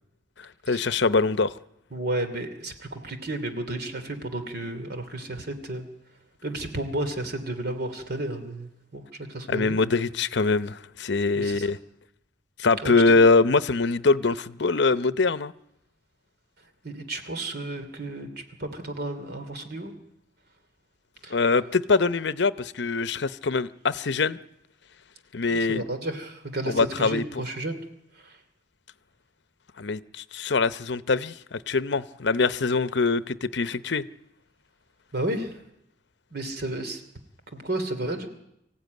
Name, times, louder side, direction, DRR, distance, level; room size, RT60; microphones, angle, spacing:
voice 1, 0.7-1.5 9.5-11.8 12.6-15.5 21.3-24.4 25.3-25.8 26.7-27.4 29.8-34.0, left 4 dB, 65° left, 0.8 m, -23 dB
voice 2, 1.9-5.9 6.4-9.0 9.3-9.8 11.3-11.7 12.8-13.1 16.8-18.3 18.6-19.9 21.2-21.4 25.4-27.8 28.2-28.4 35.1-35.5 36.3-37.0 37.5-38.3, right 1 dB, 55° right, 2.9 m, -32 dB
25.0 x 15.5 x 9.4 m
head